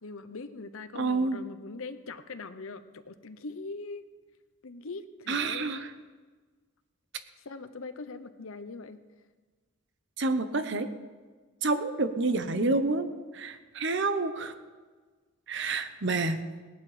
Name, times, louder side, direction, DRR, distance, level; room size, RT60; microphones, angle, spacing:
voice 1, 0.0-4.1 4.6-5.8 7.4-9.0, left 3 dB, 75° left, 10 dB, 0.9 m, -41 dB
voice 2, 0.9-1.4 5.3-5.9 10.2-10.9 11.6-13.1 13.3-14.5 15.5-16.4, right 3 dB, 55° right, 10 dB, 0.9 m, -28 dB
17.5 x 11.0 x 5.0 m, 1.4 s
head